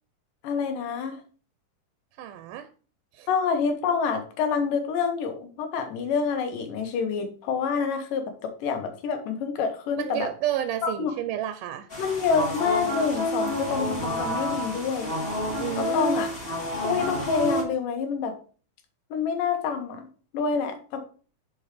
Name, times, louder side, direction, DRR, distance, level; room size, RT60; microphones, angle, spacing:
voice 1, 0.4-1.2 3.3-10.3 10.8-11.1 12.0-15.1 15.8-16.3 16.8-18.4 19.1-20.1 20.3-21.0, left 6 dB, 85° left, 6 dB, 2.8 m, -27 dB
voice 2, 2.2-2.7 3.1-3.3 10.0-11.9 15.6-16.1, right 12 dB, 85° right, 10 dB, 2.2 m, -31 dB
sound 1, 11.9-17.6, equal, 20° left, 2.5 m, -29 dB
7.2 x 4.6 x 4.9 m, 0.39 s
omnidirectional pair, 3.7 m